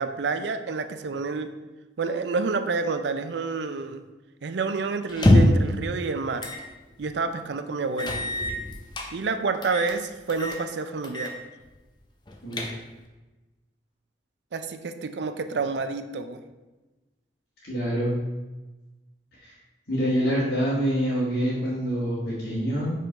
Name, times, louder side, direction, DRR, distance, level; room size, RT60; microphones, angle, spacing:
voice 1, 0.0-1.5 2.0-4.0 4.4-6.5 7.0-8.2 9.1-11.3 14.5-16.4, right 4 dB, 75° right, 9 dB, 0.5 m, -29 dB
sound 1, 5.1-5.7 6.4-6.6 7.0-7.1 8.0-9.1 9.6-10.0 10.3-10.6 11.0-11.4 11.7-11.8 12.3-13.0, left 1 dB, 25° left, 0.7 m, -23 dB
voice 2, 17.7-18.2 19.4-19.5 19.9-22.9, equal, 70° left, -10 dB, 1.6 m, -26 dB
5.4 x 3.7 x 5.2 m, 1.1 s
head